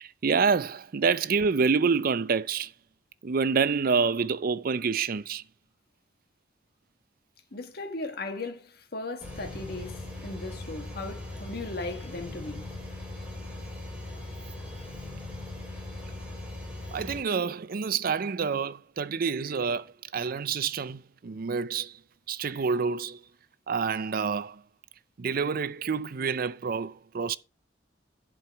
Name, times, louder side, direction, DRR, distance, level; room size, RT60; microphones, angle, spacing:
voice 1, 0.0-2.7 3.2-5.4 16.9-21.9 22.3-23.2 23.7-24.6 25.2-27.4, right 5 dB, 55° right, 0.5 m, -27 dB
voice 2, 7.5-12.7, left 2 dB, 60° left, 1.5 m, -37 dB
sound 1, 9.2-17.2, left 2 dB, 5° right, 5.0 m, -39 dB
11.0 x 4.6 x 4.7 m
head